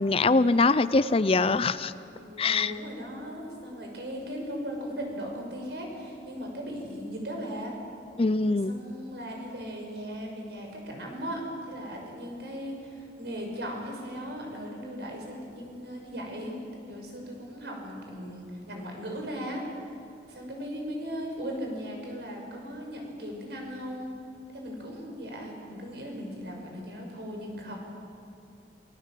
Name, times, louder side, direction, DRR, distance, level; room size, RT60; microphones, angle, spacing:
voice 1, 0.0-1.9 2.4-2.7 8.2-8.8, left 3 dB, 30° left, 15 dB, 0.5 m, -23 dB
voice 2, 2.2-7.7 8.6-19.7 20.3-24.1 24.5-27.8, equal, 70° right, 1 dB, 6.1 m, -38 dB
27.5 x 21.0 x 7.6 m, 2.6 s
head